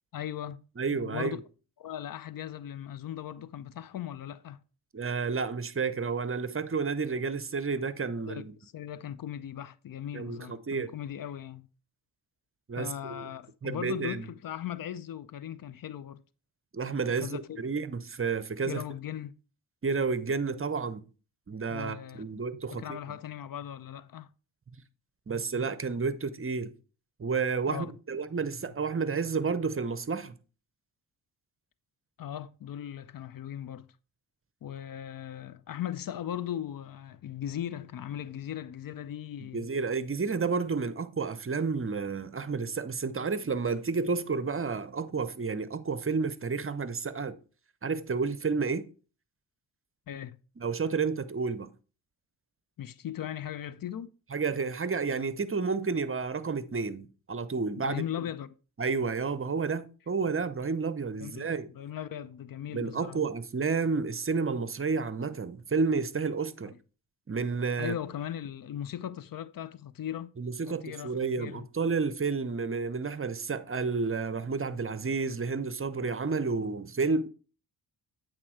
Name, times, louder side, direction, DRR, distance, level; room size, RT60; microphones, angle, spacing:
voice 1, 0.1-1.4 1.8-4.6 8.3-11.7 12.8-16.2 17.2-17.6 18.7-19.3 21.7-22.2 22.7-24.3 27.7-27.9 28.3-28.5 32.2-33.9 34.6-39.7 50.1-50.4 52.8-54.1 57.8-58.5 61.2-61.5 61.7-63.2 66.7-66.8 67.8-70.3 70.7-71.7, left 10 dB, 45° left, 0.6 m, -38 dB
voice 2, 0.8-1.4 4.9-8.5 10.1-10.9 12.7-13.3 13.6-14.3 16.7-18.8 19.8-21.1 21.5-23.0 25.3-26.7 27.2-30.4 39.5-47.4 47.8-48.9 50.6-51.7 54.3-58.0 58.8-61.7 62.7-66.7 67.3-67.9 70.4-77.3, right 4 dB, 25° right, 0.8 m, -31 dB
8.6 x 4.5 x 4.6 m
hypercardioid pair, 40°, 47 cm